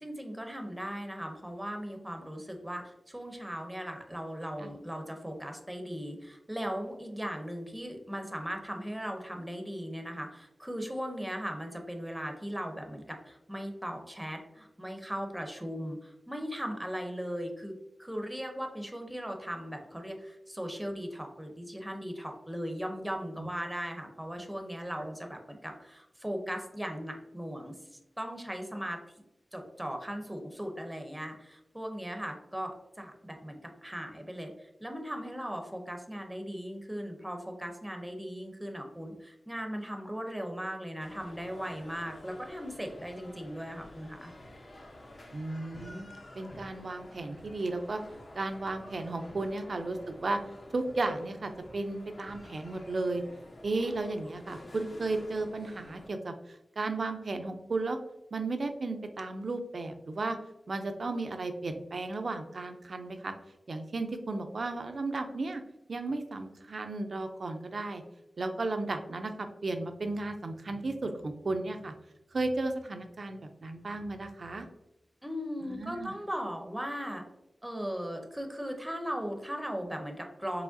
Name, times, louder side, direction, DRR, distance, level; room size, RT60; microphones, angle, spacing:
voice 1, 0.0-29.0 29.5-44.3 75.2-77.2 77.6-80.6, equal, 10° right, 4 dB, 0.6 m, -38 dB
sound 1, 41.0-56.1, left 1 dB, 50° left, 0.8 m, -50 dB
voice 2, 45.3-46.1 46.4-48.0 48.3-50.4 50.7-53.2 53.6-58.0 58.3-60.4 60.7-63.3 63.7-65.6 65.9-68.0 68.4-71.9 72.3-74.7 75.6-76.1, right 2 dB, 60° right, 6 dB, 0.5 m, -34 dB
4.8 x 3.2 x 2.6 m, 0.88 s
wide cardioid pair, 90°, 0 cm